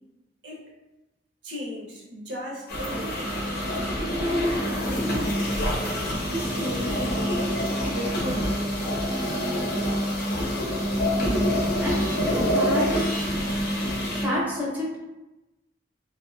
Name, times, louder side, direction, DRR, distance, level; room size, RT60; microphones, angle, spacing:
voice 1, 1.4-3.4 3.9-5.7 6.2-8.8, equal, 70° right, -3 dB, 0.6 m, -36 dB
sound 1, 2.7-14.3, equal, 55° left, 0.6 m, -26 dB
voice 2, 11.2-13.1 14.2-15.0, equal, 10° right, -6 dB, 0.5 m, -29 dB
2.6 x 2.1 x 2.4 m, 1.0 s
head